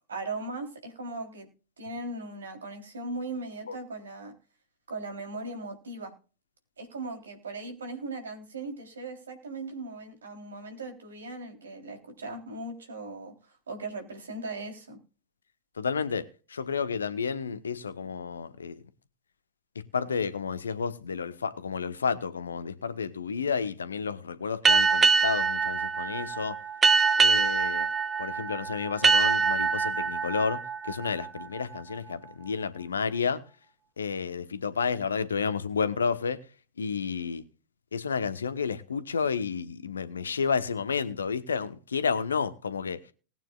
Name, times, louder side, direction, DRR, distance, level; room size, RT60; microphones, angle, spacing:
voice 1, 0.1-1.5 1.8-4.3 4.9-6.1 6.8-13.3 13.7-15.0, right 2 dB, 70° right, 3.5 m, -38 dB
voice 2, 15.8-18.8 19.9-26.6 27.2-27.9 28.2-33.4 34.0-36.4 36.8-37.4 37.9-43.0, left 5 dB, 70° left, 1.1 m, -31 dB
sound 1, 24.7-31.9, right 5 dB, 20° right, 0.7 m, -25 dB
19.5 x 9.0 x 2.4 m
figure-of-eight pair, 90°, 0 cm